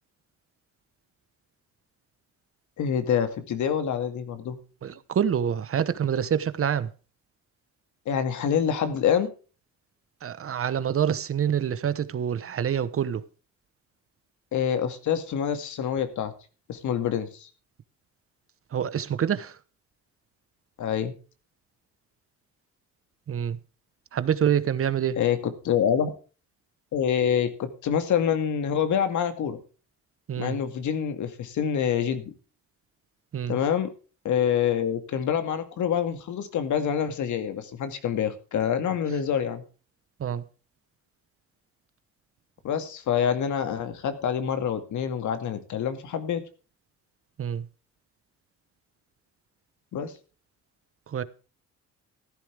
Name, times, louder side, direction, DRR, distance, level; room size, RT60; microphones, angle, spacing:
voice 1, 2.8-4.6 8.1-9.3 14.5-16.3 16.7-17.5 20.8-21.1 25.2-26.1 26.9-29.6 30.4-32.3 33.5-33.9 34.2-39.6 42.6-46.4 49.9-50.1, left 8 dB, 75° left, 2.2 m, -26 dB
voice 2, 4.8-6.9 10.2-13.2 18.7-19.6 23.3-23.6 24.1-25.2 30.3-30.6 33.3-33.6 40.2-40.4 47.4-47.6 51.1-51.2, right 8 dB, 50° right, 1.0 m, -26 dB
14.5 x 11.5 x 3.4 m
cardioid pair, 90°, 30 cm